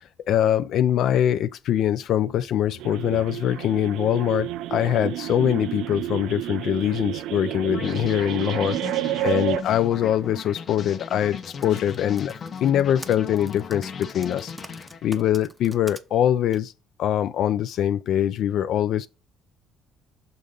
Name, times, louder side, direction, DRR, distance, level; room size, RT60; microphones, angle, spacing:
voice 1, 0.3-12.3 12.6-14.5 15.0-16.7 17.0-19.1, left 10 dB, 60° left, 0.3 m, -23 dB
sound 1, 2.8-9.6, right 14 dB, 75° right, 0.4 m, -30 dB
sound 2, 7.7-15.4, left 6 dB, 35° left, 0.8 m, -37 dB
Typing, 11.4-16.0 16.5-16.6, right 1 dB, 5° right, 0.6 m, -44 dB
6.6 x 3.8 x 5.4 m
cardioid pair, 145°, 0 cm